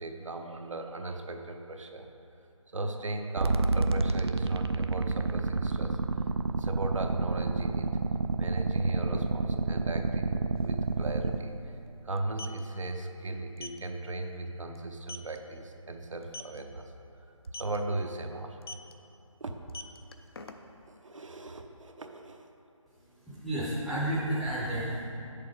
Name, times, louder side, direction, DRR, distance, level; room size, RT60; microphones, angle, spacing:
voice 1, 0.0-2.1 2.7-6.0 6.5-7.9 8.4-11.7 12.0-16.9 17.5-18.6 19.4-19.5 20.9-22.5, right 2 dB, 70° right, 4 dB, 0.9 m, -36 dB
sound 1, 3.4-11.4, right 3 dB, 50° right, 0.4 m, -29 dB
sound 2, 10.6-10.7 10.9-11.1 12.1-12.6 13.6-13.8 14.2-14.4 14.7-14.8 15.1-15.4 16.2-16.6 17.4-17.8 18.6-18.9 19.6-20.9, left 3 dB, 45° left, 0.5 m, -42 dB
voice 2, 22.9-25.0, right 1 dB, ahead, -13 dB, 0.6 m, -32 dB
8.4 x 6.7 x 4.8 m, 2.8 s
figure-of-eight pair, 160°, 17 cm